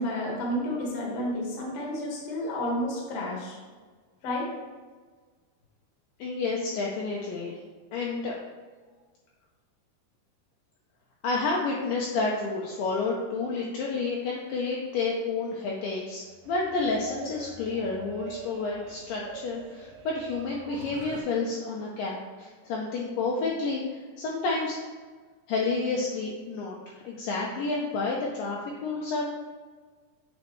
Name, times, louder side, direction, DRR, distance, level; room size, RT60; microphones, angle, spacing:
voice 1, 0.0-3.6 4.2-4.5, left 1 dB, 60° left, -3 dB, 1.8 m, -31 dB
voice 2, 6.2-7.6 7.9-8.4 11.2-24.8 25.5-26.8 27.1-29.2, left 3 dB, 85° left, -2 dB, 1.9 m, -30 dB
sound 1, 16.3-21.2, right 5 dB, 90° right, 1.9 m, -44 dB
8.3 x 4.2 x 3.0 m, 1.5 s
omnidirectional pair, 4.6 m